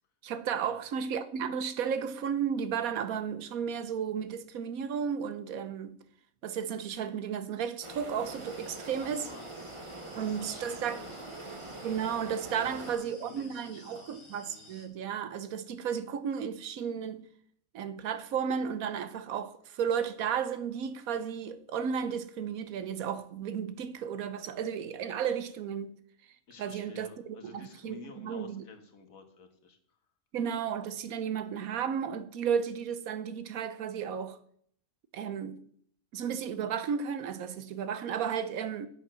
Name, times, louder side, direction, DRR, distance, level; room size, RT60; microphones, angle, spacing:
voice 1, 0.2-6.0 6.4-9.3 10.2-11.0 11.8-17.3 17.7-25.9 26.6-28.6 30.3-34.4 35.1-35.6 36.1-38.9, right 7 dB, 75° right, 1.2 m, -33 dB
sound 1, 7.8-12.9, right 2 dB, 25° right, 1.0 m, -44 dB
sound 2, 8.3-14.9, left 2 dB, 20° left, 1.7 m, -55 dB
voice 2, 8.8-9.8 10.0-11.2 12.6-14.7 26.5-30.0, left 5 dB, 65° left, 1.8 m, -52 dB
8.2 x 8.0 x 6.1 m
omnidirectional pair, 1.5 m